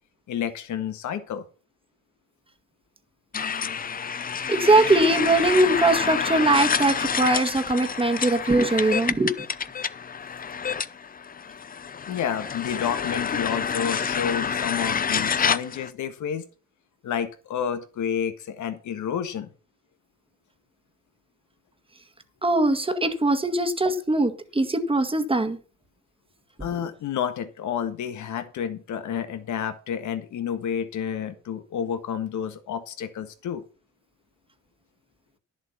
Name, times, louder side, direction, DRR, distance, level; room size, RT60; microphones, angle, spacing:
voice 1, 0.3-1.4 12.0-16.5 17.0-19.5 26.6-33.6, left 8 dB, 75° left, 9 dB, 1.6 m, -30 dB
sound 1, 3.3-15.9, left 7 dB, 30° left, 0.6 m, -28 dB
voice 2, 4.5-9.3 22.4-25.6, right 2 dB, 20° right, 8 dB, 1.7 m, -21 dB
10.5 x 7.4 x 5.7 m, 0.36 s
cardioid pair, 90°, 30 cm